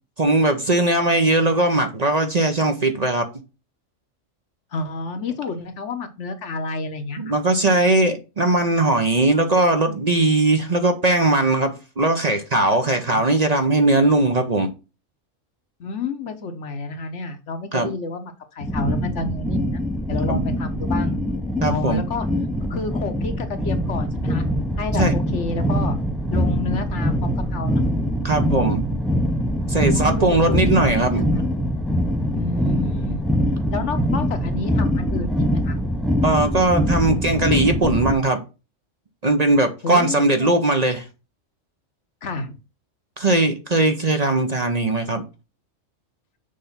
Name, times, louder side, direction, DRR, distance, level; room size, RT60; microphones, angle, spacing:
voice 1, 0.2-3.3 7.2-14.7 17.7-17.9 20.3-20.4 21.6-22.0 24.9-25.1 28.2-28.9 29.7-31.3 36.2-38.4 39.2-41.1 43.2-45.2, right 2 dB, 35° right, 6 dB, 0.8 m, -19 dB
voice 2, 4.7-7.2 13.1-13.2 15.8-19.8 20.1-21.1 21.7-22.3 22.7-24.5 24.8-26.0 26.3-27.8 29.9-31.2 32.3-33.3 33.7-35.8 39.8-40.6 42.2-42.6, left 3 dB, 65° left, 7 dB, 1.3 m, -30 dB
sound 1, 18.6-38.1, equal, ahead, 0.4 m, -23 dB
6.5 x 3.4 x 5.7 m, 0.30 s
omnidirectional pair, 1.3 m